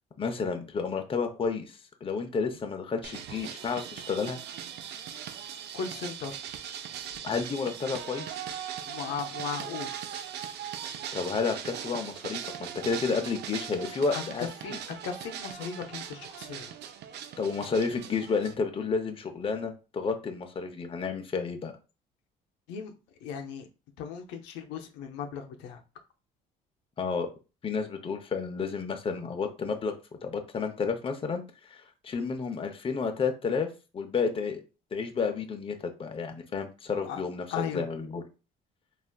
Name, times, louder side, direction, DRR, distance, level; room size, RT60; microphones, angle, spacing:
voice 1, 0.2-4.4 7.2-8.4 11.1-14.8 17.4-21.7 27.0-27.3 27.6-29.9 30.2-33.7 33.9-34.6 34.9-38.2, left 5 dB, 30° left, 5 dB, 0.6 m, -31 dB
sound 1, 3.0-18.5, right 9 dB, 70° right, 0.4 m, -39 dB
voice 2, 5.7-6.4 8.9-9.9 14.1-14.7 15.0-16.7 22.7-22.9 23.2-23.7 24.0-25.8 37.1-37.2 37.5-37.8, left 7 dB, 85° left, 4 dB, 0.5 m, -37 dB
3.2 x 2.4 x 2.2 m, 0.32 s
supercardioid pair, 80°, 18 cm